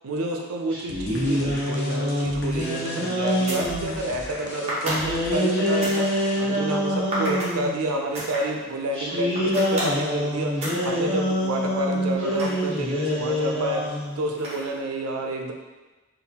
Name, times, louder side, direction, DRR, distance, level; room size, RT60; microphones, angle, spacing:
voice 1, 0.0-6.9 7.2-15.5, right 2 dB, 80° right, 2 dB, 0.5 m, -29 dB
sound 1, 0.7-4.0 4.8-7.8 8.9-14.2, equal, 5° left, 1.0 m, -25 dB
sound 2, 0.9-6.6, left 2 dB, 50° left, 0.4 m, -39 dB
sound 3, 2.5-2.7 3.2-3.7 4.7-6.0 7.1-7.5 8.1-8.4 9.3-10.0 10.6-10.9 11.3-13.1 14.4-14.8, equal, 30° right, 0.8 m, -31 dB
3.6 x 2.3 x 2.8 m, 1.2 s
head